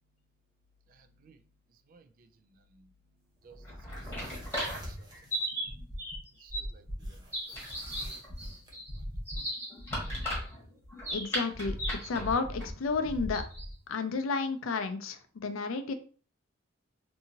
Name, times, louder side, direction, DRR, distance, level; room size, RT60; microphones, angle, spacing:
voice 1, 0.9-1.4 1.9-2.8 3.4-3.6 3.9-4.1 4.8-5.1 6.4-7.2 7.5-7.6, right 4 dB, 45° right, 0.3 m, -59 dB
sound 1, 3.5-13.8, equal, 15° left, 1.2 m, -36 dB
sound 2, 3.8-5.5 7.0-8.8, right 1 dB, 20° right, 0.7 m, -51 dB
voice 2, 11.1-11.8 12.0-13.4 13.9-15.9, left 4 dB, 85° left, 0.4 m, -31 dB
2.7 x 2.6 x 2.7 m
head